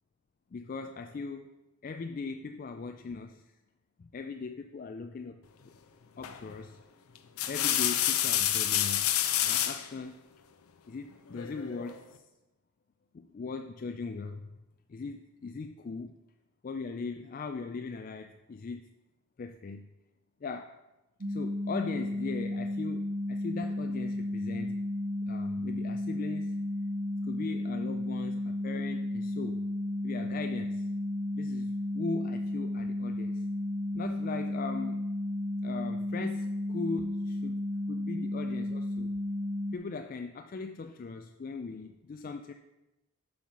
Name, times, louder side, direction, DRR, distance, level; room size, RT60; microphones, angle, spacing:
voice 1, 0.5-1.5 1.8-3.4 4.0-5.4 6.2-6.8 7.5-9.2 9.4-10.2 10.9-12.2 13.1-14.5 14.9-16.1 16.6-18.8 19.4-19.9 20.4-20.7 21.3-24.8 25.3-26.6 27.2-29.6 30.0-30.9 31.3-33.4 33.9-35.1 35.6-37.6 37.9-39.1 39.7-42.5, left 4 dB, 40° left, 6 dB, 0.3 m, -39 dB
sound 1, 6.2-6.5 7.1-9.9 11.3-12.0, left 11 dB, 80° left, 0.6 m, -28 dB
sound 2, 21.2-39.8, left 1 dB, 40° right, 0.5 m, -33 dB
7.3 x 5.6 x 5.6 m, 0.99 s
head